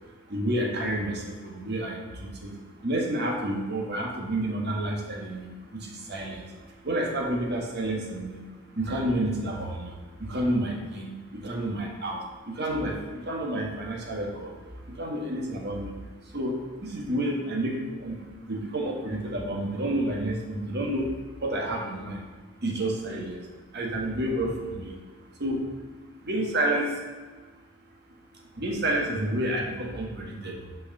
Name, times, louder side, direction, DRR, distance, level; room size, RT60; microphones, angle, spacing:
voice 1, 0.3-2.5 2.8-5.5 5.8-6.4 6.8-8.4 8.7-9.9 10.3-12.2 12.5-14.5 15.0-15.9 16.3-16.6 16.8-18.2 18.5-21.1 21.4-22.2 22.6-23.4 23.7-24.9 25.4-25.7 26.2-26.9 28.6-30.6, right 1 dB, 45° right, 0 dB, 1.5 m, -29 dB
6.1 x 4.9 x 6.6 m, 1.4 s
head